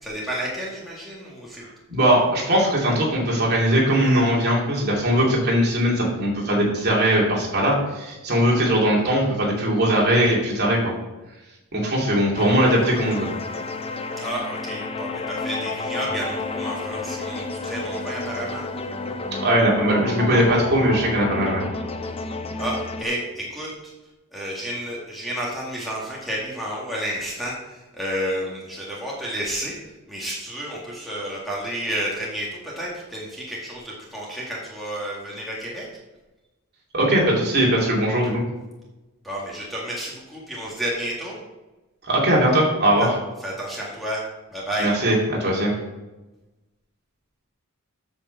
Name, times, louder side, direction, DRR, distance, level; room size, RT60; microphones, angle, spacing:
voice 1, 0.0-1.7 14.2-18.6 22.1-22.2 22.6-23.9 24.3-35.9 39.2-41.4 43.0-43.1 43.4-44.2 44.5-44.9, right 1 dB, ahead, -5 dB, 1.8 m, -31 dB
voice 2, 1.9-10.8 11.7-13.3 19.3-21.6 36.9-38.4 42.0-43.1 44.8-45.7, right 1 dB, 45° right, -3 dB, 2.8 m, -20 dB
sound 1, 12.3-23.0, left 3 dB, 25° left, 0.6 m, -30 dB
8.6 x 5.1 x 6.9 m, 1.1 s
head